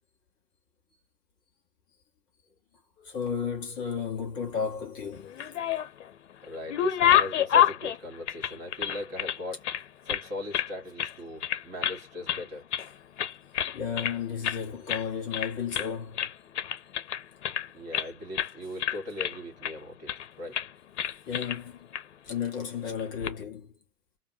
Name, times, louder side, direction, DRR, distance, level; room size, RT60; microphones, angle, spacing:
voice 1, 3.0-5.5 13.7-16.3 21.3-22.0 22.2-23.8, left 7 dB, 10° left, 0.5 m, -33 dB
sound 1, 5.2-6.1 6.4-9.4 9.6-10.7 11.0-11.2 11.4-12.0 12.3-12.9 13.2-14.2 14.4-14.6 14.9-15.1 15.3-15.9 16.2-18.1 18.4-18.5 18.8-19.7 20.1-20.3 20.5-20.7 21.0-21.6 21.9-22.0 23.0-23.3, left 10 dB, 45° left, 0.9 m, -28 dB
voice 2, 6.4-9.6 10.1-12.6 17.7-20.1 20.4-20.6, left 1 dB, 25° right, 1.9 m, -39 dB
5.2 x 2.3 x 2.8 m
figure-of-eight pair, 125°, 47 cm